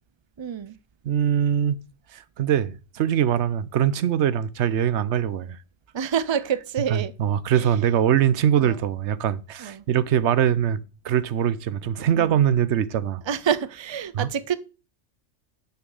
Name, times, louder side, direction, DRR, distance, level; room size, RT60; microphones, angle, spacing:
voice 1, 0.4-0.8 5.9-7.1 7.5-7.7 8.6-8.8 9.6-9.9 12.1-12.4 13.3-14.5, right 8 dB, 40° right, 0.4 m, -27 dB
voice 2, 1.0-1.8 2.1-5.6 6.9-13.2 14.1-14.3, right 9 dB, 70° right, 0.9 m, -22 dB
6.6 x 5.8 x 7.0 m
omnidirectional pair, 1.2 m